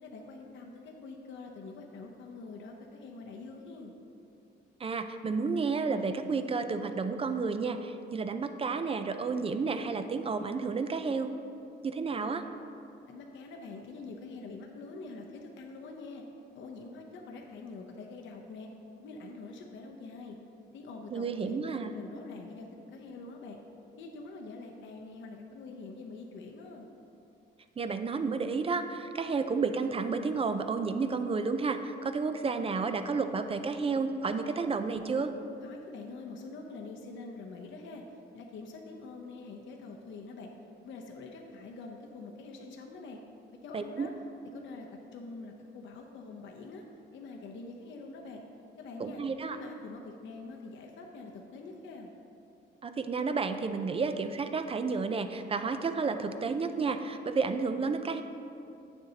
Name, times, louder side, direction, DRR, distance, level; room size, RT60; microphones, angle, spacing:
voice 1, 0.0-3.9 13.1-16.2 16.5-18.7 19.0-20.4 20.7-23.6 24.0-26.9 35.6-38.0 38.3-40.5 40.8-43.2 43.6-44.1 44.5-46.8 47.1-48.4 48.8-49.2 49.5-52.1, left 3 dB, 70° left, 1 dB, 0.7 m, -45 dB
voice 2, 4.8-11.3 11.8-12.4 21.1-21.9 27.8-35.3 43.7-44.1 49.0-49.6 52.8-58.2, right 4 dB, 30° right, 8 dB, 0.4 m, -31 dB
8.8 x 6.7 x 2.8 m, 2.7 s
cardioid pair, 90°, 20 cm